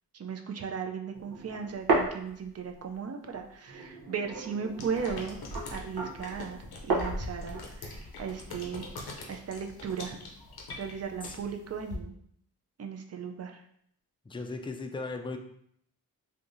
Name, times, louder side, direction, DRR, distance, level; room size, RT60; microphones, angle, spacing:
voice 1, 0.2-5.4 5.7-6.6 6.8-8.9 9.3-10.2 10.8-12.1 12.8-13.5, right 6 dB, 40° right, 4 dB, 0.5 m, -36 dB
sound 1, 1.1-3.0 3.3-9.2, right 3 dB, 85° right, 0.8 m, -34 dB
sound 2, 4.8-11.9, left 2 dB, 85° left, 0.7 m, -42 dB
voice 2, 14.2-15.4, left 3 dB, 15° left, 5 dB, 0.3 m, -37 dB
3.4 x 2.7 x 2.6 m, 0.70 s
cardioid pair, 60°, 37 cm